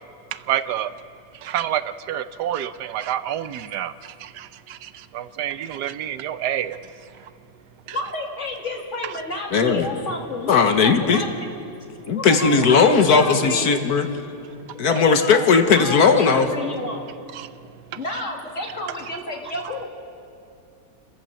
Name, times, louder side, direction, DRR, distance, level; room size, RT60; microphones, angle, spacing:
voice 1, 0.5-0.9 1.4-6.8 17.4-17.5, right 11 dB, 85° right, 1.3 m, -28 dB
voice 2, 7.9-11.5 12.1-13.7 14.8-17.1 18.0-19.9, left 2 dB, 45° left, 2.7 m, -30 dB
voice 3, 9.5-9.9 10.5-11.2 12.1-14.1 14.8-16.5, left 5 dB, 70° left, 1.7 m, -17 dB
29.0 x 13.0 x 7.5 m
omnidirectional pair, 1.8 m